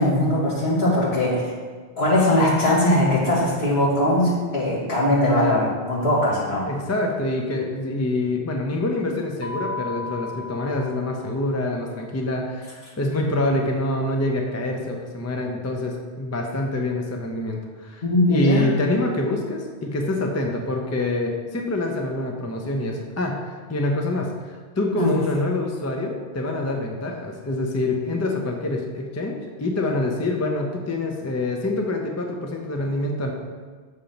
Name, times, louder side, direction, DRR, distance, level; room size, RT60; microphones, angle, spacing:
voice 1, 0.0-1.5 2.0-6.7 18.0-18.7 25.0-25.1, left 1 dB, 70° left, -7 dB, 2.0 m, -20 dB
voice 2, 6.7-33.3, left 2 dB, 25° left, 1 dB, 0.4 m, -26 dB
Mallet percussion, 9.4-11.5, left 2 dB, 60° right, 0.3 m, -35 dB
6.7 x 2.9 x 5.2 m, 1.5 s
omnidirectional pair, 1.1 m